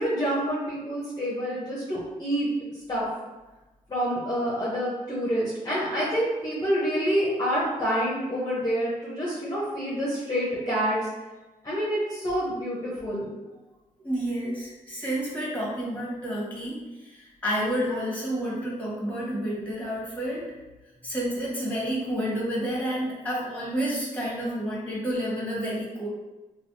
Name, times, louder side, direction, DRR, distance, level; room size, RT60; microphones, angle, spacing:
voice 1, 0.0-2.5 2.9-3.1 3.9-11.0 11.6-13.4, equal, 30° left, -8 dB, 0.9 m, -27 dB
voice 2, 14.0-20.5 21.0-26.1, equal, 10° left, -5 dB, 1.4 m, -30 dB
3.2 x 2.3 x 2.7 m, 1.1 s
cardioid pair, 70°, 15 cm